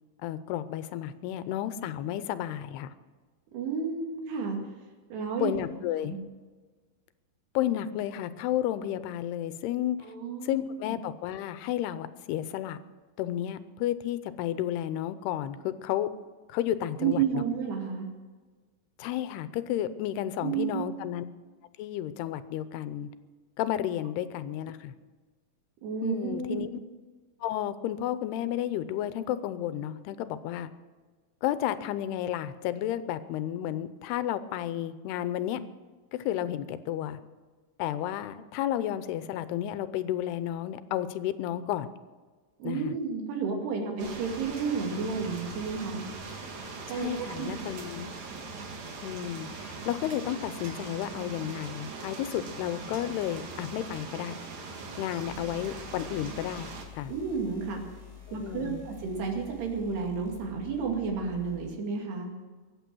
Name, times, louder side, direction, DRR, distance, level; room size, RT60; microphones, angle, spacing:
voice 1, 0.2-2.9 5.4-6.1 7.5-10.0 10.4-12.8 13.2-16.1 16.5-17.4 19.0-21.2 21.8-23.1 23.6-24.9 26.0-26.7 27.4-30.7 31.4-35.6 36.1-37.2 37.8-41.9 42.6-42.9 46.9-48.2 49.0-54.4 55.0-57.1 58.3-58.8, left 12 dB, 85° left, 13 dB, 2.8 m, -32 dB
voice 2, 3.5-4.6 5.1-5.6 6.0-6.2 10.0-10.7 17.0-18.1 20.4-20.8 25.8-26.6 42.6-46.0 46.9-47.5 57.1-57.8 58.3-62.3, right 6 dB, 85° right, 2 dB, 4.4 m, -31 dB
sound 1, 44.0-56.9, right 4 dB, 55° right, 2.8 m, -41 dB
sound 2, 55.3-61.7, left 8 dB, 10° left, 5.4 m, -49 dB
23.0 x 8.8 x 6.2 m, 1.4 s
omnidirectional pair, 4.6 m